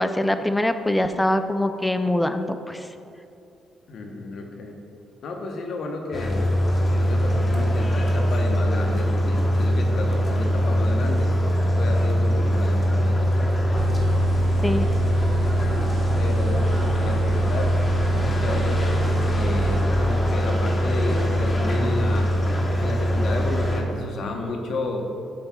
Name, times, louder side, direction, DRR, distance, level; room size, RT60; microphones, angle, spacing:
voice 1, 0.0-2.9 14.6-14.9, left 1 dB, 10° left, 9 dB, 0.4 m, -23 dB
voice 2, 3.9-4.8 5.2-6.5 6.9-11.3 11.7-13.5 16.1-17.7 18.1-22.4 22.8-25.0, left 2 dB, 65° left, 2 dB, 1.0 m, -32 dB
sound 1, 6.1-23.8, equal, 30° left, 1.2 m, -22 dB
sound 2, 13.8-19.9, right 8 dB, 70° right, 0.8 m, -31 dB
12.0 x 5.4 x 2.3 m, 2.6 s
cardioid pair, 90°, 0 cm